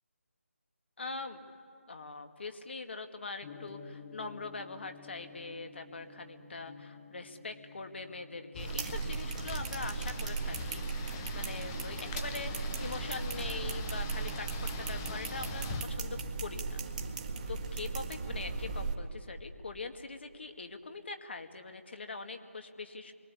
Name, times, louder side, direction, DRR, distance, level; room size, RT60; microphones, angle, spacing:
voice 1, 1.0-1.5 1.9-16.8 17.5-23.1, left 3 dB, 50° left, 6 dB, 2.1 m, -43 dB
Gong, 3.4-17.6, left 5 dB, 30° left, 1.7 m, -55 dB
sound 1, 8.5-15.8, left 5 dB, 10° left, 0.8 m, -44 dB
sound 2, 8.6-18.9, right 4 dB, 30° right, 1.9 m, -37 dB
28.0 x 23.5 x 8.5 m, 2.3 s
figure-of-eight pair, 170°, 8 cm